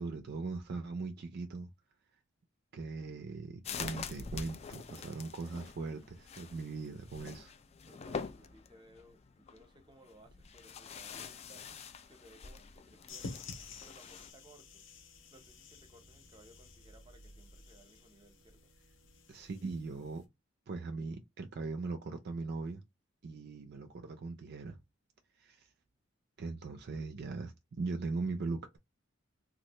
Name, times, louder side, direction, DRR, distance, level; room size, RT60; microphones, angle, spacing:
voice 1, 0.0-1.7 2.7-7.5 19.3-20.2 20.7-22.8 23.2-24.8 25.4-25.7 26.4-28.8, right 3 dB, 55° right, 0.4 m, -40 dB
sound 1, 3.6-14.3, left 5 dB, 35° left, 0.3 m, -45 dB
voice 2, 7.9-11.6 12.0-13.4 13.8-14.8 15.3-18.7, right 1 dB, 25° right, 0.7 m, -60 dB
sound 2, 13.1-20.3, left 3 dB, 70° left, 0.8 m, -51 dB
3.1 x 2.4 x 2.9 m
head